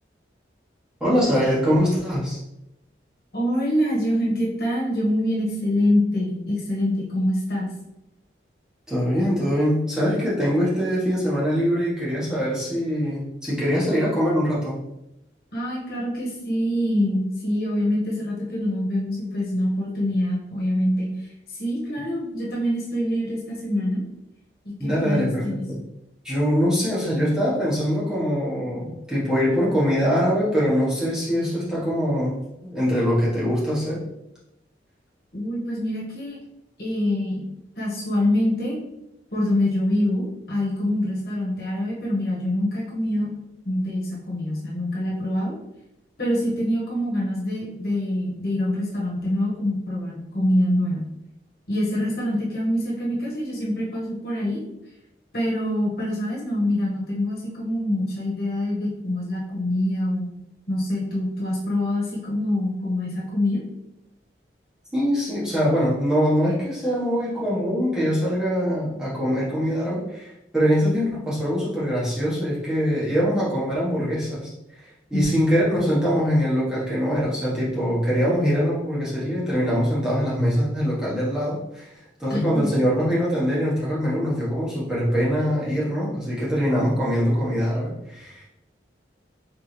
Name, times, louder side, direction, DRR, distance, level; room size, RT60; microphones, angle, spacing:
voice 1, 1.0-2.4 8.9-14.8 24.8-25.8 26.2-34.1 64.9-74.5 74.8-81.9 82.2-88.4, equal, 5° right, -9 dB, 1.3 m, -23 dB
voice 2, 3.3-7.7 15.5-21.1 21.5-24.0 24.6-25.6 35.3-36.4 36.8-37.4 37.8-38.8 39.3-43.3 43.6-45.6 46.2-51.1 51.7-54.6 55.3-60.3 60.7-63.6 75.1-75.3 82.3-82.7, left 1 dB, 55° left, -5 dB, 1.5 m, -25 dB
4.3 x 3.6 x 3.3 m, 0.87 s
head